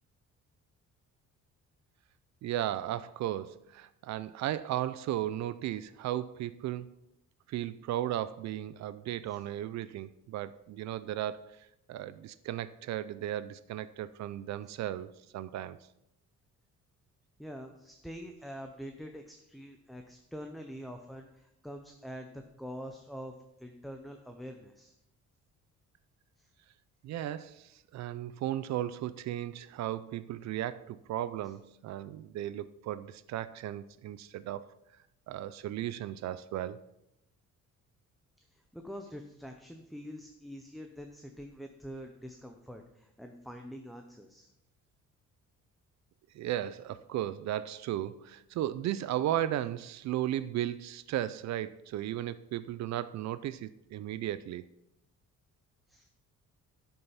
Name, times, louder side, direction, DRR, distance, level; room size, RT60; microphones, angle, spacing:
voice 1, 2.4-6.9 7.5-15.8 27.0-34.7 35.3-36.8 46.3-54.6, right 12 dB, 60° right, 0.5 m, -35 dB
voice 2, 17.4-23.3 23.6-24.9 26.4-26.5 38.5-44.5 55.9-56.1, equal, ahead, 0.5 m, -45 dB
12.0 x 5.5 x 5.7 m
cardioid pair, 175°, 30 cm